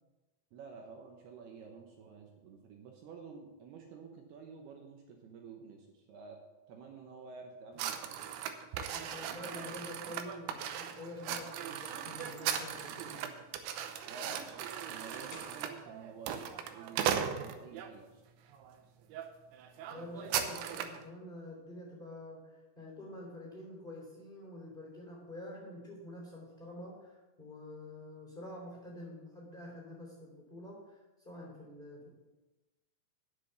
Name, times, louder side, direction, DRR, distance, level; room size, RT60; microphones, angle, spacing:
voice 1, 0.5-6.4 6.7-8.2 14.1-18.2 20.2-20.5, right 5 dB, 75° right, 2 dB, 2.8 m, -50 dB
sound 1, 7.8-17.9 18.5-18.7 19.1-19.3 19.5-21.0, right 9 dB, 90° right, 3.1 m, -38 dB
voice 2, 8.9-13.3 19.9-32.1, left 1 dB, 15° left, -3 dB, 2.6 m, -47 dB
sound 2, 12.1-13.1 13.5-13.8 14.2-15.8, left 4 dB, 60° left, 3.1 m, -56 dB
9.8 x 8.0 x 6.9 m, 1.1 s
omnidirectional pair, 5.2 m